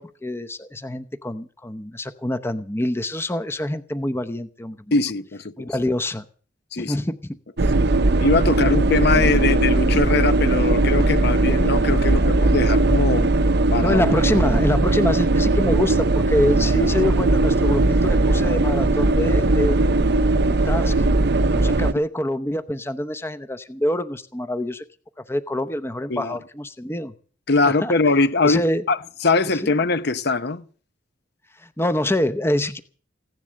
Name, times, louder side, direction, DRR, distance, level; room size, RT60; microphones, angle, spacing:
voice 1, 0.0-4.8 5.6-6.2 6.8-7.3 13.8-19.8 20.6-20.9 21.5-24.8 25.3-27.1 27.7-27.9 28.4-28.8 29.6-29.7 31.6-32.8, left 1 dB, 10° left, 0.8 m, -25 dB
voice 2, 4.9-5.7 6.7-7.0 8.2-13.3 13.7-14.0 26.1-26.4 27.5-30.6, left 3 dB, 55° left, 0.8 m, -22 dB
sound 1, 7.6-21.9, right 2 dB, 55° right, 0.8 m, -19 dB
16.0 x 11.0 x 7.7 m
head